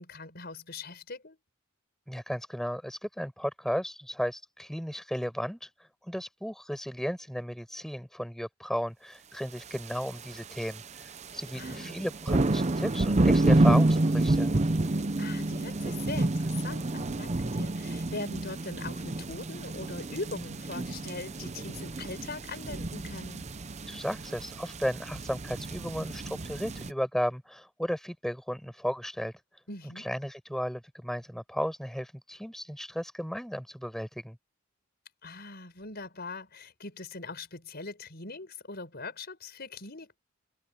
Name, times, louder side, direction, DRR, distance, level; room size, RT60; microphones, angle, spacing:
voice 1, 0.0-1.4 11.5-12.0 15.2-23.4 29.7-30.1 35.2-40.2, left 3 dB, 50° left, 5.6 m, -41 dB
voice 2, 2.1-5.7 6.0-10.8 11.3-14.5 23.9-29.3 30.0-34.4, equal, ahead, 6.2 m, -34 dB
sound 1, 9.8-10.1 10.5-10.8 11.2-26.9, right 2 dB, 35° right, 0.7 m, -29 dB
head